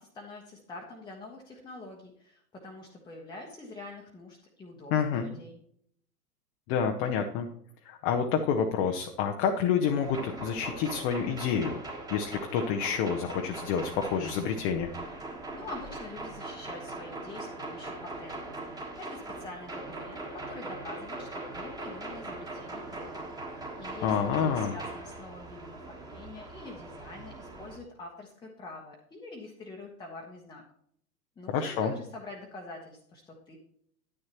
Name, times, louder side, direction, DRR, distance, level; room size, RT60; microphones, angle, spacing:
voice 1, 0.0-5.6 15.3-23.3 23.8-30.6 31.4-33.6, left 2 dB, 10° left, -1 dB, 1.0 m, -46 dB
voice 2, 4.9-5.3 6.7-7.5 7.8-11.8 12.1-14.9 24.0-24.7 31.5-31.9, left 7 dB, 25° left, 4 dB, 0.7 m, -28 dB
sound 1, 10.0-27.8, right 2 dB, 10° right, 1.5 m, -41 dB
10.0 x 9.9 x 3.0 m, 0.67 s
figure-of-eight pair, 100°, 49 cm